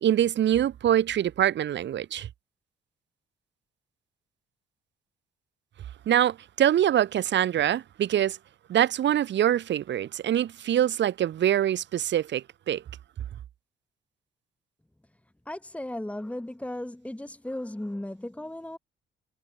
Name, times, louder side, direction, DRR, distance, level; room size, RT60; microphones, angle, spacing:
voice 1, 0.0-2.3 6.1-8.4 8.7-12.8, right 11 dB, 65° right, 1.6 m, -24 dB
voice 2, 15.4-18.8, left 1 dB, 5° left, 3.0 m, -36 dB
cardioid pair, 90°, 20 cm